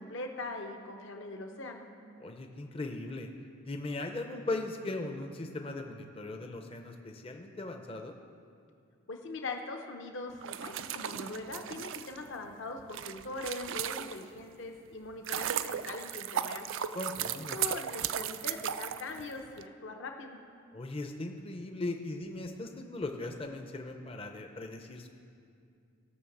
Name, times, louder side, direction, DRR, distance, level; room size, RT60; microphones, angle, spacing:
voice 1, 0.0-1.9 9.1-16.7 17.5-20.4, left 2 dB, 55° left, 3 dB, 0.8 m, -41 dB
voice 2, 2.2-3.3 3.6-8.1 16.9-17.6 20.7-25.1, left 2 dB, 25° left, 4 dB, 0.6 m, -38 dB
sound 1, 10.3-14.4 14.9-19.6, right 10 dB, 60° right, 0.3 m, -36 dB
16.0 x 5.9 x 7.1 m, 2.4 s
head